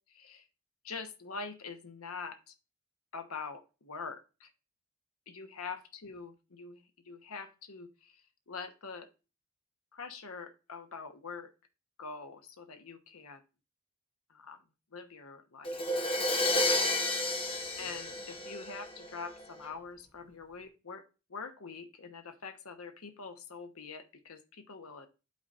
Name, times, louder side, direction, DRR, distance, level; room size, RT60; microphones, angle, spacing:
voice 1, 0.1-0.4 0.8-2.5 3.1-4.5 5.3-8.1 8.5-9.1 9.9-11.5 12.0-13.4 14.3-14.6 14.9-15.8 16.5-17.0 17.8-21.0 21.3-25.1, left 5 dB, 70° left, 9 dB, 1.0 m, -44 dB
Crash cymbal, 15.6-19.4, left 2 dB, 25° left, 0.9 m, -31 dB
11.5 x 4.0 x 2.5 m, 0.31 s
head